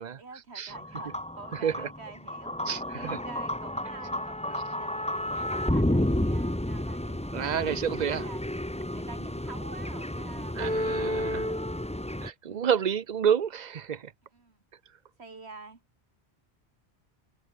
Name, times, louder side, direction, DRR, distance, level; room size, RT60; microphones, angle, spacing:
voice 1, 0.2-2.6 2.9-8.4 8.9-11.7 12.5-12.7 14.3-14.6 15.2-15.8, right 3 dB, 75° right, 2.4 m, -47 dB
sound 1, 0.7-12.3, left 1 dB, 5° left, 1.2 m, -31 dB
voice 2, 1.5-1.9 2.7-3.2 7.3-8.2 10.6-11.5 12.2-14.1, right 8 dB, 45° right, 0.7 m, -29 dB
omnidirectional pair, 1.1 m